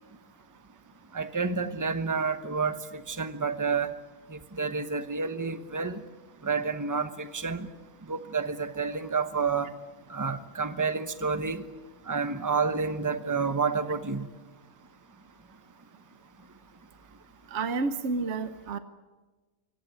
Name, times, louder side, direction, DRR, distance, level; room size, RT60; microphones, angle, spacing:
voice 1, 1.1-3.9 4.3-6.0 6.4-7.7 8.1-9.7 10.1-11.6 12.1-14.3, right 5 dB, 15° right, 10 dB, 1.0 m, -29 dB
voice 2, 17.5-18.8, right 4 dB, 60° right, 10 dB, 1.3 m, -30 dB
24.0 x 18.5 x 9.5 m, 1.2 s
omnidirectional pair, 1.4 m